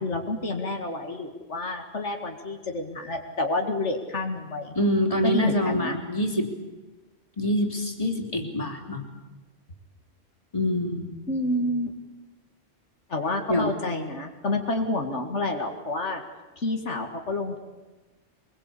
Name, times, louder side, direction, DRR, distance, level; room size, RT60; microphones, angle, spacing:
voice 1, 0.0-4.8 5.2-6.0 11.3-12.1 13.1-16.2 16.6-17.6, left 2 dB, 75° left, 3 dB, 2.4 m, -29 dB
voice 2, 4.7-6.5 7.4-9.1 10.5-11.1 13.5-13.7, left 1 dB, 30° left, 3 dB, 3.1 m, -25 dB
23.5 x 22.5 x 8.5 m, 1.2 s
omnidirectional pair, 1.2 m